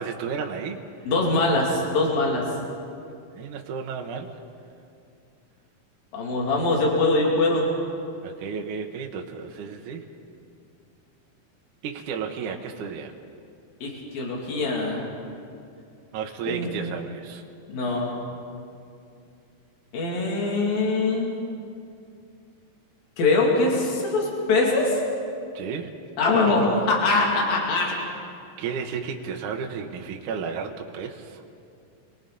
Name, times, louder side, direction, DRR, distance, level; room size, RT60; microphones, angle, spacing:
voice 1, 0.0-1.1 3.3-4.3 8.2-10.1 11.8-13.1 16.1-17.4 25.5-25.9 28.6-31.4, right 6 dB, 70° right, 2 dB, 2.4 m, -33 dB
voice 2, 1.1-2.5 6.1-7.7 13.8-15.1 16.5-16.9 17.7-18.1 19.9-21.3 23.2-25.0 26.2-27.9, left 2 dB, 75° left, -2 dB, 4.5 m, -23 dB
29.0 x 23.0 x 4.1 m, 2.5 s
omnidirectional pair, 4.1 m